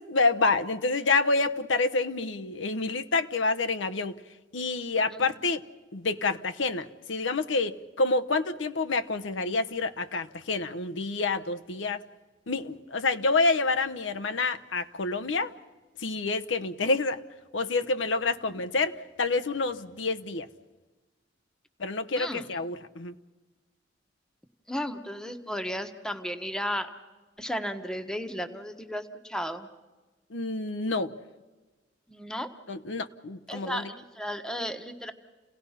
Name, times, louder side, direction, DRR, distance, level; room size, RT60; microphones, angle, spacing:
voice 1, 0.0-4.2 4.5-5.6 5.9-12.0 12.5-15.5 16.0-17.2 17.5-20.5 21.8-23.1 30.3-31.1 32.7-33.9, left 3 dB, 85° left, 9 dB, 0.9 m, -28 dB
voice 2, 22.1-22.5 24.7-26.9 27.4-29.7 32.1-32.5 33.5-35.1, equal, 5° left, 7 dB, 1.1 m, -34 dB
29.5 x 17.5 x 5.7 m, 1.2 s
head